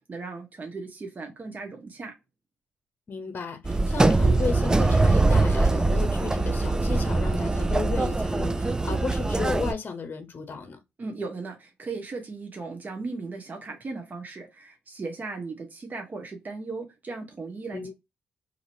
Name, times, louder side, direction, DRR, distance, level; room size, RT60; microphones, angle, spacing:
voice 1, 0.0-2.1 11.0-17.8, right 3 dB, 40° right, 1.1 m, -37 dB
voice 2, 3.1-10.8 17.7-18.0, left 5 dB, 45° left, 0.7 m, -34 dB
sound 1, 3.6-9.7, right 2 dB, 15° right, 0.3 m, -22 dB
2.9 x 2.7 x 2.6 m
hypercardioid pair, 50°, 5 cm